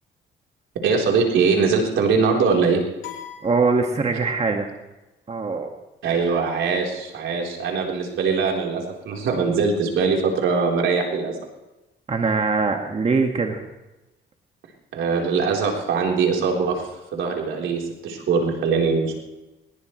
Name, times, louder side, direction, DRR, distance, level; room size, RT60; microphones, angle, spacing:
voice 1, 0.8-2.8 6.0-11.3 14.9-16.8 17.1-19.1, right 5 dB, 80° right, 0 dB, 4.1 m, -22 dB
sound 1, 3.0-4.5, left 10 dB, 80° left, 3.6 m, -41 dB
voice 2, 3.4-4.7 5.3-5.7 12.1-13.7, right 4 dB, 30° right, 3 dB, 1.9 m, -22 dB
21.0 x 21.0 x 3.3 m, 1.0 s
cardioid pair, 90°, 20 cm